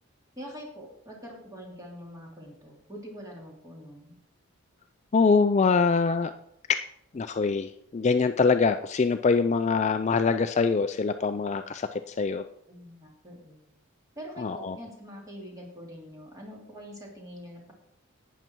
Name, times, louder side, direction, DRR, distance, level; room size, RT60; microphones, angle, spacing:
voice 1, 0.4-4.1 12.7-13.7 14.1-17.7, equal, 15° right, -2 dB, 3.0 m, -44 dB
voice 2, 5.1-6.3 6.7-6.8 7.1-12.4 14.4-14.7, left 4 dB, 30° left, 9 dB, 0.3 m, -24 dB
11.5 x 9.2 x 4.6 m, 0.77 s
head